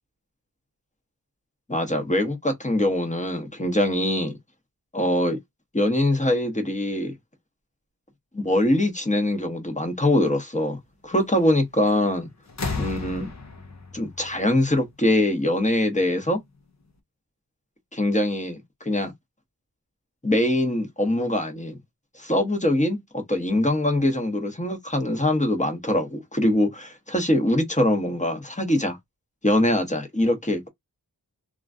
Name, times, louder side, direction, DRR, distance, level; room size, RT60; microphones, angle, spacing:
voice 1, 1.7-4.4 4.9-5.4 5.7-7.1 8.3-10.8 11.0-12.3 12.8-13.3 13.9-16.4 17.9-19.1 20.2-21.8 22.1-29.0 29.4-30.7, left 1 dB, 20° left, 1.0 m, -23 dB
sound 1, 11.9-12.2 12.5-15.2 16.4-16.5, left 4 dB, 40° left, 0.8 m, -34 dB
3.0 x 2.4 x 2.5 m
wide cardioid pair, 65°, 41 cm